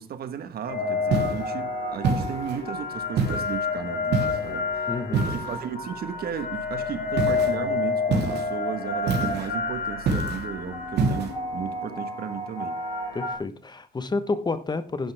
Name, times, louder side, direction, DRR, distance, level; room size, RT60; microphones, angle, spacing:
voice 1, 0.0-12.8, right 8 dB, 65° right, 1.4 m, -35 dB
sound 1, 0.7-13.4, left 4 dB, 65° left, 6.8 m, -29 dB
sound 2, 1.1-1.5 2.0-2.6 3.2-3.6 4.1-4.5 5.1-5.6 7.2-7.5 8.1-8.5 9.1-9.5 10.1-10.5 11.0-11.3, right 4 dB, 85° right, 3.2 m, -26 dB
voice 2, 4.9-5.4 13.1-15.1, left 3 dB, 25° left, 1.1 m, -29 dB
11.0 x 10.0 x 3.5 m
cardioid pair, 95°, 17 cm